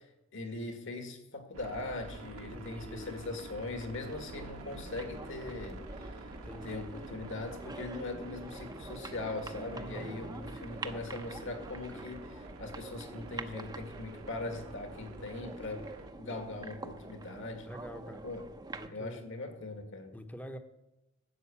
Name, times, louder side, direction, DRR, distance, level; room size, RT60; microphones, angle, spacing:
voice 1, 0.3-6.1 6.6-12.2 12.6-15.9 16.2-17.7 18.2-18.5 18.9-20.1, left 2 dB, 60° left, 5 dB, 1.9 m, -40 dB
sound 1, 1.5-16.1, right 2 dB, 85° right, 1.2 m, -49 dB
voice 2, 2.5-3.1 6.4-7.0 9.7-11.5 11.9-12.2 14.9-15.1 17.7-18.3 18.7-19.2 20.1-20.6, equal, 5° left, 8 dB, 0.9 m, -47 dB
sound 2, 4.0-18.9, right 2 dB, 20° right, 0.7 m, -46 dB
12.5 x 6.5 x 8.4 m, 0.97 s
head